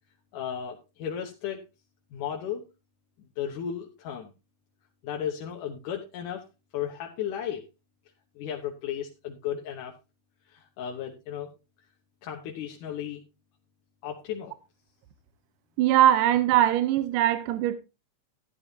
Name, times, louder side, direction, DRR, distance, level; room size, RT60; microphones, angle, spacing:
voice 1, 0.3-1.6 2.1-2.6 3.4-4.3 5.0-6.5 6.7-7.6 8.4-9.9 10.5-11.5 12.2-13.2 14.0-14.5, left 9 dB, 75° left, 2.6 m, -34 dB
voice 2, 15.8-17.8, right 12 dB, 80° right, 2.4 m, -21 dB
13.5 x 11.0 x 2.8 m
omnidirectional pair, 3.8 m